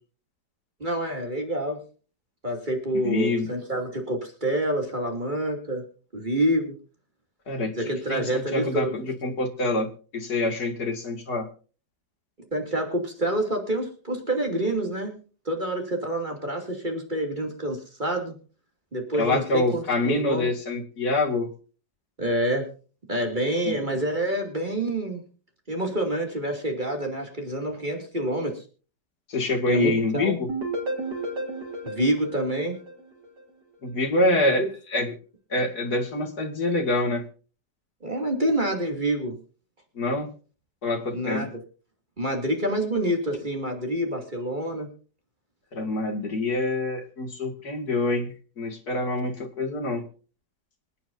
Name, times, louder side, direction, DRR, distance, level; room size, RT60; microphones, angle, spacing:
voice 1, 0.8-1.8 2.4-5.8 6.1-6.8 7.7-8.9 12.5-15.2 15.4-18.4 18.9-20.5 22.2-22.7 23.1-25.2 25.7-28.6 29.7-30.3 31.8-32.8 34.4-34.7 38.0-39.4 41.1-41.5 42.2-44.9, right 1 dB, 25° right, 2 dB, 2.9 m, -27 dB
voice 2, 2.9-3.5 7.5-7.7 8.1-11.5 19.2-21.5 23.7-23.8 29.3-30.5 33.8-34.6 34.9-35.1 35.5-37.2 40.0-40.3 40.8-41.5 45.7-50.0, left 2 dB, 65° left, 4 dB, 2.8 m, -26 dB
sound 1, 30.5-33.4, right 2 dB, 85° right, 3.7 m, -33 dB
25.5 x 9.2 x 2.7 m, 0.37 s
omnidirectional pair, 1.8 m